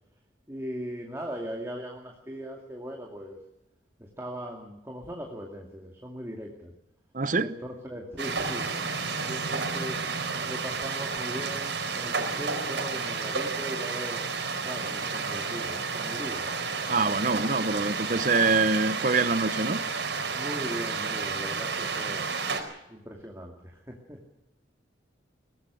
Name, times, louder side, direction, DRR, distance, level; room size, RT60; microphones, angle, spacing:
voice 1, 0.5-3.4 4.0-6.7 7.3-8.7 9.0-10.0 10.5-14.3 14.6-16.5 20.3-22.3 22.9-24.2, equal, 15° right, 0 dB, 2.4 m, -39 dB
voice 2, 7.1-7.5 16.9-19.8, right 3 dB, 45° right, 14 dB, 0.9 m, -25 dB
sound 1, 8.2-22.6, right 4 dB, 80° right, 4.3 m, -31 dB
23.0 x 18.5 x 6.4 m, 0.86 s
head